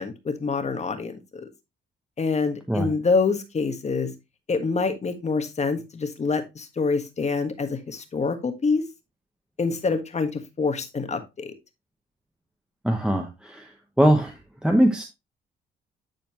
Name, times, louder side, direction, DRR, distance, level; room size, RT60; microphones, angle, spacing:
voice 1, 0.0-1.5 2.2-4.1 4.5-8.9 9.6-11.5, left 4 dB, 35° left, 7 dB, 1.5 m, -26 dB
voice 2, 12.8-13.7 14.0-15.0, right 1 dB, 5° right, 3 dB, 1.1 m, -21 dB
10.5 x 4.3 x 3.0 m, 0.23 s
cardioid pair, 90°, 20 cm